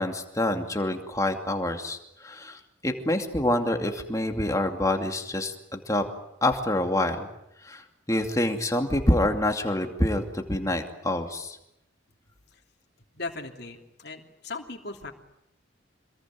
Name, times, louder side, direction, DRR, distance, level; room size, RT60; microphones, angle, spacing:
voice 1, 0.0-6.0 6.4-7.3 7.6-11.6, left 1 dB, 15° left, 5 dB, 2.5 m, -27 dB
voice 2, 13.1-15.1, left 3 dB, 55° left, 2 dB, 3.1 m, -38 dB
27.0 x 21.5 x 9.5 m, 0.82 s
head